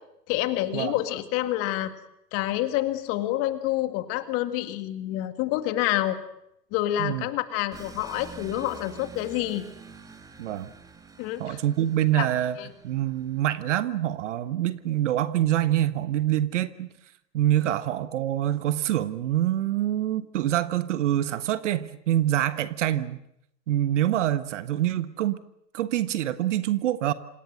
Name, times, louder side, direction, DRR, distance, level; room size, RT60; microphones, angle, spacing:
voice 1, 0.3-1.9 2.3-6.2 6.7-9.7 11.2-11.6 12.1-12.3 12.6-12.7 17.6-17.7, left 14 dB, 30° left, 9 dB, 2.0 m, -28 dB
sound 1, 7.7-14.0, right 5 dB, 5° right, 1.6 m, -47 dB
voice 2, 10.4-10.7 11.4-12.6 12.8-16.9 17.3-23.2 23.7-25.4 25.7-27.1, right 12 dB, 45° right, 13 dB, 1.4 m, -25 dB
27.5 x 26.5 x 6.6 m, 0.80 s
figure-of-eight pair, 120°, 50 cm